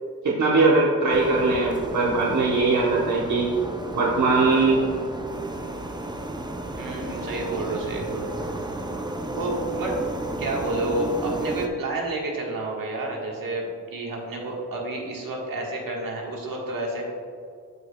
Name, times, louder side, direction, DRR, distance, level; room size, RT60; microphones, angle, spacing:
voice 1, 0.2-3.5 3.9-4.8, right 3 dB, 60° right, -4 dB, 1.0 m, -20 dB
sound 1, 1.1-11.7, right 2 dB, 15° right, 0.5 m, -33 dB
voice 2, 6.8-8.9 9.3-10.0 10.4-17.1, right 2 dB, 80° right, -2 dB, 1.5 m, -30 dB
13.0 x 5.1 x 2.3 m, 2.3 s
wide cardioid pair, 140°, 34 cm